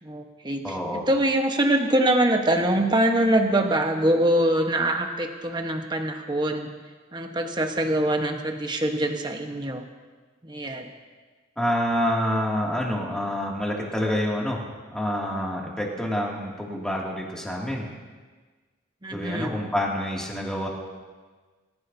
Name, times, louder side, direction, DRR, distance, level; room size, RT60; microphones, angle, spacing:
voice 1, 0.0-6.7 7.1-9.8 10.4-10.9 19.0-19.6, right 1 dB, 20° right, 3 dB, 1.2 m, -24 dB
voice 2, 0.6-1.1 11.6-14.6 14.9-17.9 19.1-20.7, equal, 5° left, -3 dB, 2.5 m, -27 dB
25.5 x 14.5 x 2.8 m, 1.4 s
head